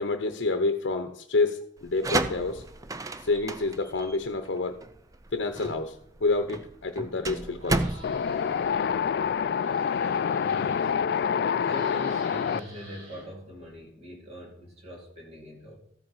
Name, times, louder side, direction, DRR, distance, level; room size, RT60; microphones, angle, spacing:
voice 1, 0.0-2.7 3.2-4.8 5.3-8.0, left 3 dB, 75° left, 6 dB, 0.7 m, -28 dB
sound 1, 1.8-9.4, right 2 dB, 20° right, 0.4 m, -33 dB
sound 2, 7.6-9.0 9.3-11.1 11.4-13.7, right 1 dB, 85° right, 4.6 m, -48 dB
Wind, 8.0-12.6, left 7 dB, 60° left, 0.3 m, -27 dB
voice 2, 10.5-11.3 11.6-15.8, left 1 dB, 35° right, -1 dB, 2.7 m, -42 dB
14.0 x 5.3 x 5.6 m, 0.68 s
head